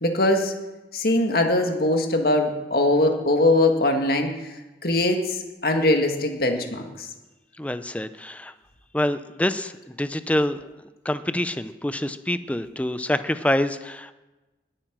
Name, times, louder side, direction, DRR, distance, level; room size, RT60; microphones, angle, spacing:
voice 1, 0.0-0.5 0.9-4.3 4.8-7.1, left 1 dB, 55° left, 3 dB, 2.0 m, -21 dB
voice 2, 7.6-8.5 8.9-10.6 11.0-14.1, left 1 dB, 10° left, 11 dB, 0.6 m, -26 dB
21.0 x 8.9 x 6.1 m, 1.1 s
head